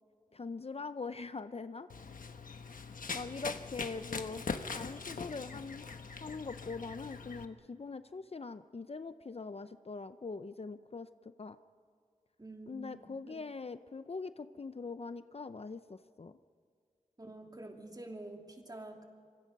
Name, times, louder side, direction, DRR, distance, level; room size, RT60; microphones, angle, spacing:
voice 1, 0.3-1.9 3.1-4.4 4.7-5.9 6.2-11.1 11.4-11.6 12.7-16.4, left 4 dB, 45° left, 12 dB, 0.6 m, -42 dB
Run, 1.9-7.4, left 4 dB, 85° left, 1.1 m, -42 dB
voice 2, 12.4-13.4 17.2-19.0, right 2 dB, 30° right, 2 dB, 2.9 m, -48 dB
25.5 x 24.5 x 5.4 m, 2.2 s
wide cardioid pair, 90°, 14 cm